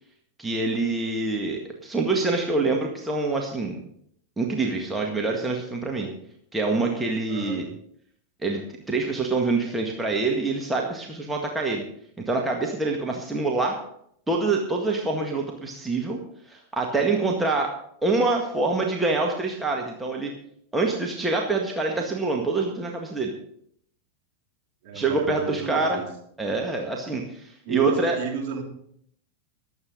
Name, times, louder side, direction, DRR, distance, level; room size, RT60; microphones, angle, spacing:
voice 1, 0.4-3.8 4.4-6.1 6.5-7.6 8.4-11.8 12.3-13.8 14.3-16.2 16.4-17.7 18.0-20.3 20.7-23.3 24.9-26.0 26.4-28.1, right 3 dB, 10° right, 0 dB, 1.8 m, -25 dB
voice 2, 7.3-7.6 24.8-26.1 27.7-28.6, right 5 dB, 45° right, -1 dB, 3.8 m, -32 dB
23.0 x 8.2 x 3.9 m, 0.68 s
figure-of-eight pair, 90°, 0 cm